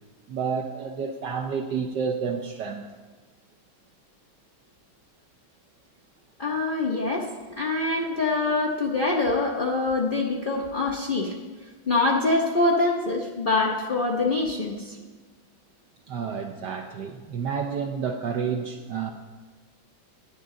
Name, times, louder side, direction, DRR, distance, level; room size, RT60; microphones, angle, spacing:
voice 1, 0.3-2.9 16.1-19.1, right 6 dB, 70° right, 3 dB, 1.2 m, -30 dB
voice 2, 6.4-11.3 11.9-15.0, left 3 dB, 45° left, -2 dB, 0.7 m, -25 dB
11.0 x 10.5 x 3.8 m, 1.3 s
omnidirectional pair, 2.2 m